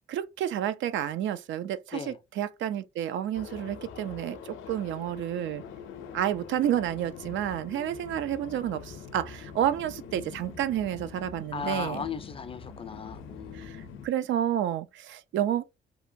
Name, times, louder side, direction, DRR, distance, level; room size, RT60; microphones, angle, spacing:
voice 1, 0.1-5.6 6.1-12.1 13.5-15.6, right 11 dB, 70° right, 0.4 m, -30 dB
sound 1, 3.3-14.1, left 6 dB, 85° left, 0.5 m, -44 dB
voice 2, 11.5-13.9, left 6 dB, 30° left, 0.4 m, -37 dB
2.7 x 2.2 x 2.5 m
cardioid pair, 90°, 20 cm